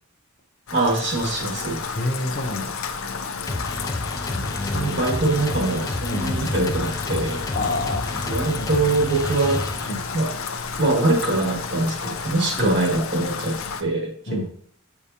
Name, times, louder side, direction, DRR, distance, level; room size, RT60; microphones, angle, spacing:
Rain, 0.7-13.8, left 5 dB, 65° left, 0.6 m, -31 dB
voice 1, 0.7-1.8 4.3-4.4 4.7-7.4 8.2-9.6 10.1-10.3 10.8-14.5, right 2 dB, 55° right, 0 dB, 1.8 m, -23 dB
voice 2, 1.9-2.8 4.3-5.0 6.1-6.5 7.5-8.3 8.6-8.7 9.8-10.0 12.6-12.7 14.3-14.5, left 2 dB, 40° left, 2 dB, 0.8 m, -28 dB
sound 1, 3.5-10.2, left 2 dB, 15° left, 0.4 m, -30 dB
7.9 x 4.9 x 2.8 m, 0.62 s
head